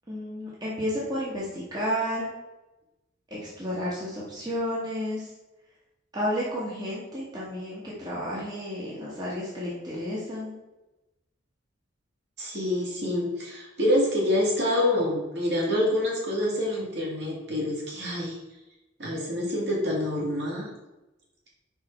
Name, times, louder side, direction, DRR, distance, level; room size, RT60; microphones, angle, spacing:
voice 1, 0.1-2.3 3.3-5.3 6.1-10.5, equal, 20° right, -6 dB, 1.2 m, -31 dB
voice 2, 12.4-18.4 19.0-20.7, left 1 dB, 55° right, -4 dB, 2.0 m, -26 dB
5.2 x 4.8 x 4.3 m, 1.0 s
head